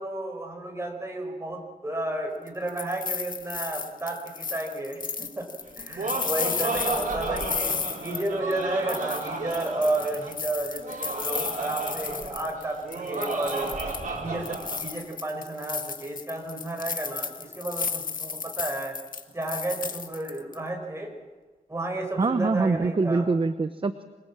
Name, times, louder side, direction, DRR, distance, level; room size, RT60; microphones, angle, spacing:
voice 1, 0.0-5.5 5.8-13.8 14.1-19.0 19.3-21.1 21.7-23.2, right 1 dB, 20° right, 2 dB, 5.2 m, -32 dB
sound 1, 2.5-8.6 8.9-12.6 12.9-14.1 14.4-20.5, left 5 dB, 70° left, 1.6 m, -33 dB
Laughter, 5.7-14.8, right 3 dB, 65° right, 5.7 m, -33 dB
voice 2, 22.2-24.0, right 3 dB, 35° right, 10 dB, 0.9 m, -24 dB
27.0 x 22.0 x 7.5 m, 1.3 s
wide cardioid pair, 140°, 15 cm